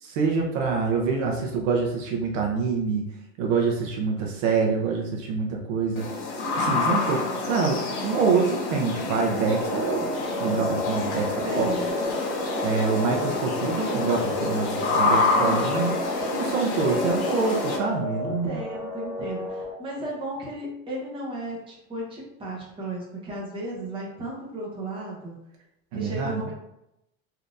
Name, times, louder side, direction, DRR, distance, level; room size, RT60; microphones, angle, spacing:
voice 1, 0.0-3.0 3.4-6.1 6.6-10.1 10.4-11.7 12.6-15.9 16.3-18.6 25.9-26.4, right 5 dB, 60° right, 1 dB, 0.7 m, -26 dB
sound 1, 6.0-17.8, left 3 dB, 40° left, 0.8 m, -27 dB
voice 2, 6.4-7.1 11.4-11.9 15.3-16.2 18.2-25.4 25.9-26.5, right 2 dB, 10° right, -5 dB, 0.8 m, -35 dB
sound 2, 9.6-19.7, left 1 dB, 5° left, 0.6 m, -33 dB
3.4 x 2.7 x 2.5 m, 0.84 s
supercardioid pair, 150°, 42 cm